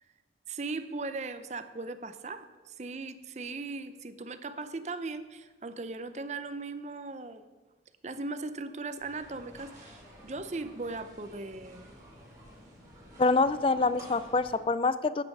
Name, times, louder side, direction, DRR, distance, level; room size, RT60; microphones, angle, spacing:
voice 1, 0.5-7.5 8.0-11.9, right 3 dB, 40° right, 11 dB, 0.6 m, -38 dB
sound 1, 9.0-14.6, equal, 20° right, 3.2 m, -52 dB
voice 2, 13.2-15.2, left 3 dB, 30° left, 15 dB, 0.3 m, -26 dB
9.2 x 8.6 x 6.1 m, 1.3 s
head